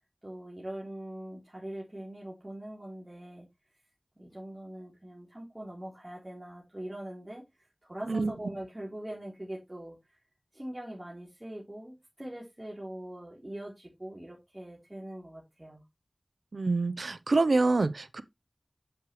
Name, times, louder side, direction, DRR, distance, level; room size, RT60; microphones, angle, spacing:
voice 1, 0.2-3.5 4.2-7.4 7.8-10.0 10.5-15.8, right 1 dB, 25° right, 3.5 m, -42 dB
voice 2, 16.5-18.2, right 3 dB, 85° right, 0.8 m, -26 dB
8.3 x 7.9 x 3.2 m
wide cardioid pair, 45°, 0 cm